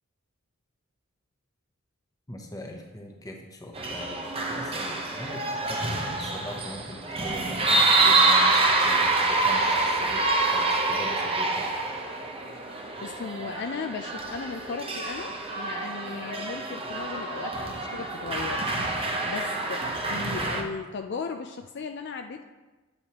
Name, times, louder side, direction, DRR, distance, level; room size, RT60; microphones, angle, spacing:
voice 1, 2.3-11.7, left 1 dB, 15° left, 1 dB, 0.9 m, -41 dB
sound 1, 3.7-20.6, right 3 dB, 25° right, 0.8 m, -26 dB
voice 2, 12.5-22.4, left 4 dB, 50° left, 5 dB, 0.4 m, -37 dB
8.8 x 8.0 x 3.0 m, 1.2 s
head